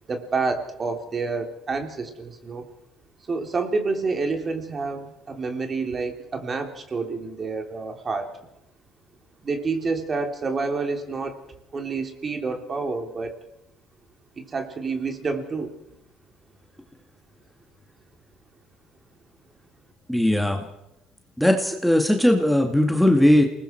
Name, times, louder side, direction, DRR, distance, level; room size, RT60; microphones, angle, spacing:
voice 1, 0.1-2.6 3.3-8.3 9.4-11.4 11.7-13.3 14.4-15.7, right 4 dB, 35° right, 4 dB, 3.4 m, -28 dB
voice 2, 20.1-20.6 21.4-23.5, left 1 dB, ahead, 3 dB, 2.1 m, -19 dB
28.0 x 20.0 x 4.6 m, 0.89 s
supercardioid pair, 80°, 0 cm